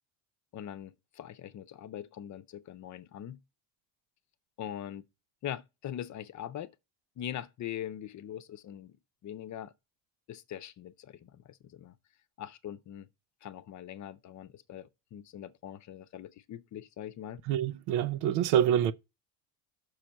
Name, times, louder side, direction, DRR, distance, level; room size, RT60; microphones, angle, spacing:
voice 1, 0.5-3.4 4.6-5.0 5.4-6.7 7.2-9.0 9.2-9.7 10.3-12.0 12.4-13.1 13.4-17.4, left 10 dB, 45° left, 0.7 m, -42 dB
voice 2, 17.5-18.9, right 10 dB, 85° right, 0.7 m, -26 dB
6.3 x 4.4 x 6.3 m
supercardioid pair, 110°, 43 cm